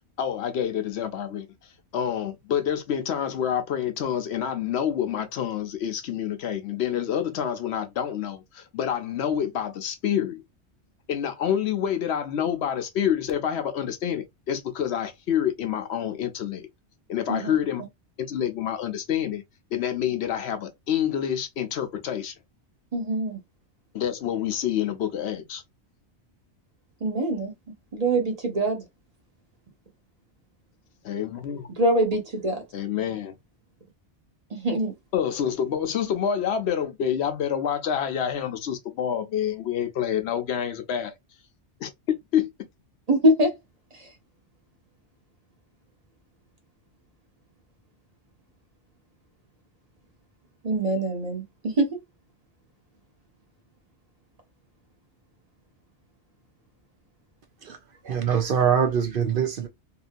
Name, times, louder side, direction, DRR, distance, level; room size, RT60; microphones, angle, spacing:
voice 1, 0.2-1.5 1.9-10.4 11.1-16.7 17.1-17.8 18.2-19.4 19.7-22.3 23.9-25.6 31.0-31.7 32.7-33.4 35.1-41.1 41.8-42.5, left 9 dB, 70° left, 0.9 m, -27 dB
voice 2, 22.9-23.4 27.0-27.5 27.9-28.8 31.8-32.6 34.5-34.9 43.1-43.5 44.0-44.1 50.6-51.4 51.8-51.9, right 1 dB, 35° right, 0.9 m, -23 dB
voice 3, 58.0-59.7, right 7 dB, 60° right, 0.7 m, -23 dB
2.9 x 2.6 x 2.5 m
omnidirectional pair, 1.2 m